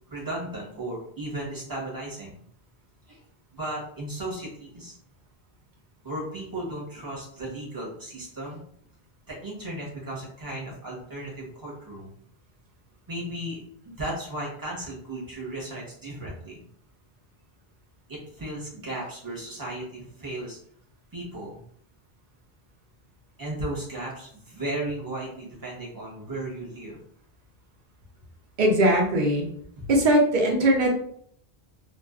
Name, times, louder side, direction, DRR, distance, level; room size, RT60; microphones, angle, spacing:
voice 1, 0.1-2.4 3.1-3.2 3.5-4.9 6.0-8.6 9.3-12.1 13.1-16.6 18.1-20.6 21.1-21.6 23.4-27.0 29.8-29.9, right 1 dB, 20° right, -5 dB, 0.9 m, -35 dB
voice 2, 28.6-29.5 29.9-30.9, right 1 dB, 55° right, 1 dB, 0.7 m, -20 dB
2.4 x 2.3 x 2.4 m, 0.64 s
omnidirectional pair, 1.0 m